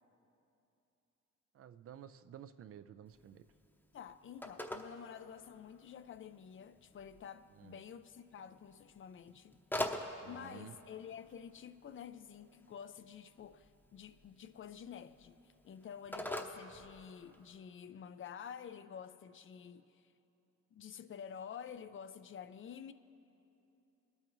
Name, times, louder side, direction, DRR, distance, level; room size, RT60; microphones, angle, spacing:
voice 1, 1.5-3.4 7.5-7.8 10.2-10.8, right 9 dB, 50° right, 0.5 m, -53 dB
Telephone, 3.1-17.6, left 1 dB, 5° left, 0.8 m, -47 dB
voice 2, 3.9-9.6 9.8-20.1 20.7-22.9, left 8 dB, 45° left, 0.4 m, -50 dB
23.0 x 8.7 x 3.1 m
cardioid pair, 90°, 30 cm